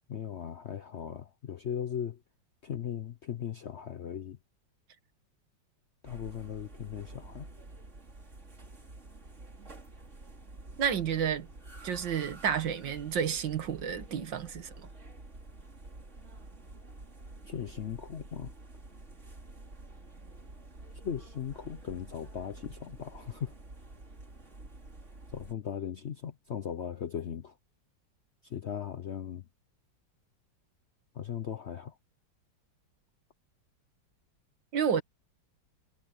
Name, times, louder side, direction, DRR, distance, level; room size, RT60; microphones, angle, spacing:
voice 1, 0.1-2.2 2.6-4.4 6.0-7.5 17.5-18.5 21.0-23.5 25.3-27.5 28.4-29.4 31.1-31.9, left 8 dB, 55° left, 0.7 m, -38 dB
sound 1, 6.0-25.5, right 2 dB, 40° right, 3.2 m, -49 dB
voice 2, 10.8-11.5 11.8-14.7 34.7-35.0, right 8 dB, 75° right, 2.2 m, -30 dB
omnidirectional pair, 2.0 m